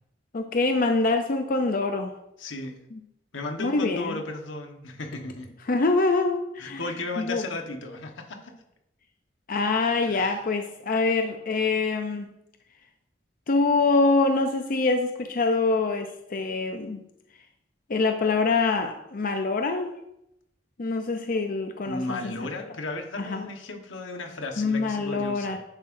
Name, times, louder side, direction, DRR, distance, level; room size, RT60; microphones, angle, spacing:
voice 1, 0.3-2.1 3.6-4.2 5.7-6.8 7.2-7.4 9.5-12.3 13.5-17.0 17.9-19.9 20.8-22.3 23.2-23.4 24.6-25.6, left 3 dB, 45° left, 6 dB, 0.5 m, -25 dB
voice 2, 2.4-2.7 3.3-5.5 6.6-8.5 10.0-10.5 21.8-25.6, left 2 dB, 90° left, 4 dB, 1.2 m, -35 dB
10.5 x 7.5 x 2.6 m, 0.83 s
head